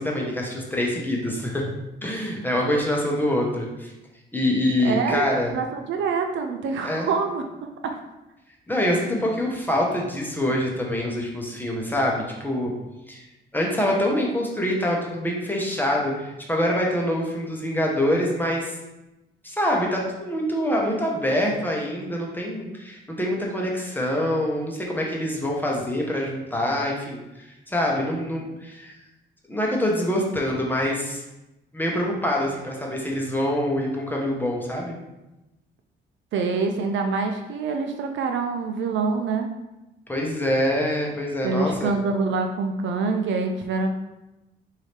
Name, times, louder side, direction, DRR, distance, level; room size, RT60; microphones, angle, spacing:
voice 1, 0.0-1.6 2.0-3.9 4.3-5.5 6.8-7.1 8.7-12.7 13.1-13.2 13.5-18.7 19.4-28.9 29.5-31.2 31.7-35.0 40.1-41.9, left 1 dB, 10° left, -2 dB, 1.0 m, -25 dB
voice 2, 4.8-7.4 7.8-8.0 36.3-39.5 41.4-43.9, right 4 dB, 70° right, 4 dB, 0.5 m, -25 dB
4.8 x 2.7 x 3.3 m, 0.98 s
cardioid pair, 90°, 20 cm